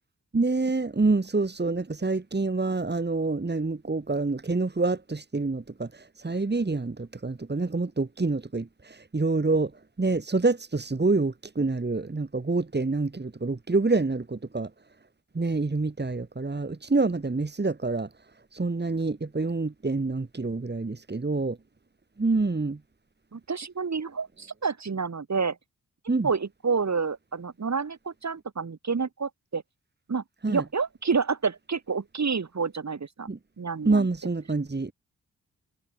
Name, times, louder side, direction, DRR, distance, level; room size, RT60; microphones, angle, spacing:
voice 1, 0.3-9.7 10.0-14.7 15.3-18.1 18.5-21.6 22.2-22.8 26.1-26.3 30.4-30.6 33.3-33.4 33.8-34.9, right 3 dB, 30° right, 2.6 m, -27 dB
voice 2, 23.3-25.6 26.2-29.6 30.1-33.3 33.6-34.1, right 5 dB, 50° right, 4.1 m, -29 dB
supercardioid pair, 40°, 34 cm